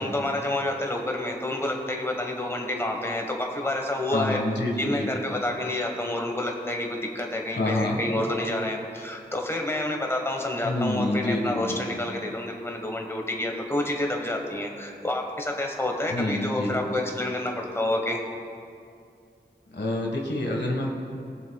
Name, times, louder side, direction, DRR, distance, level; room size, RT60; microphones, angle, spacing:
voice 1, 0.0-4.4 4.8-18.2, left 1 dB, 15° left, 1 dB, 1.3 m, -29 dB
voice 2, 4.1-5.1 7.5-8.0 10.6-12.0 16.1-16.8 19.7-20.9, left 1 dB, 80° left, 0 dB, 1.5 m, -27 dB
20.5 x 7.2 x 2.3 m, 2.5 s
wide cardioid pair, 45°, 18 cm